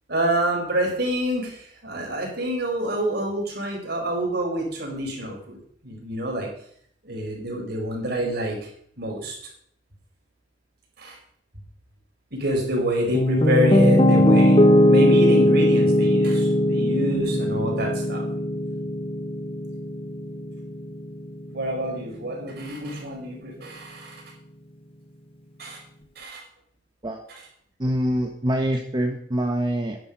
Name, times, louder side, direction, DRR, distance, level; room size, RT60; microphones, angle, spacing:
voice 1, 0.1-6.5 7.0-8.7 9.0-9.4 11.0-11.2 12.3-18.2 21.5-24.2 25.6-25.8 26.1-26.4 27.3-27.5, equal, 60° right, -1 dB, 4.9 m, -27 dB
Piano, 13.1-21.2, left 1 dB, 30° left, 1.0 m, -19 dB
voice 2, 27.8-30.0, equal, 25° right, 3 dB, 1.1 m, -25 dB
10.5 x 10.5 x 5.4 m, 0.63 s
head